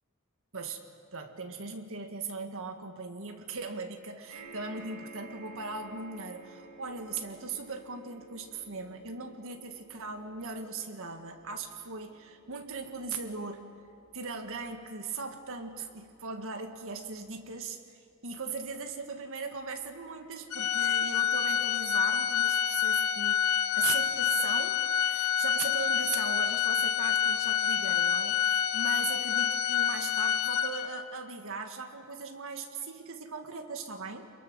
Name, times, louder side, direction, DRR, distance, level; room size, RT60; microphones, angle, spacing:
voice 1, 1.1-13.7 14.1-34.3, right 4 dB, 65° right, 5 dB, 1.9 m, -39 dB
sound 1, 4.3-18.9 19.6-19.7 20.0-20.1, right 3 dB, 90° right, 5.6 m, -54 dB
Organ, 20.5-31.1, left 9 dB, 70° left, 0.6 m, -27 dB
27.5 x 22.0 x 6.3 m, 2.3 s
head